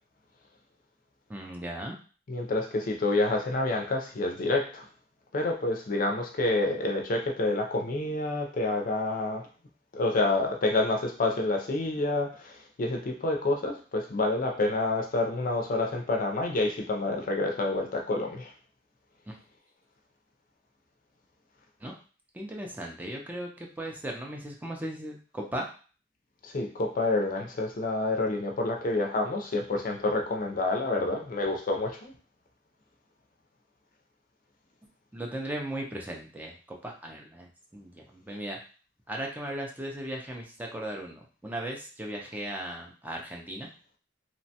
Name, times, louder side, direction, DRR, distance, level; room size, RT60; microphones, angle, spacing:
voice 1, 1.3-2.0 19.3-19.4 21.8-21.9 22.3-23.5 23.8-25.7 35.1-36.6 36.8-37.5 37.7-38.6 39.1-43.7, right 1 dB, 10° right, 0 dB, 0.4 m, -37 dB
voice 2, 2.3-4.9 5.3-9.5 9.9-18.5 26.4-32.1, left 2 dB, 50° left, 3 dB, 0.5 m, -28 dB
2.9 x 2.1 x 2.7 m, 0.38 s
head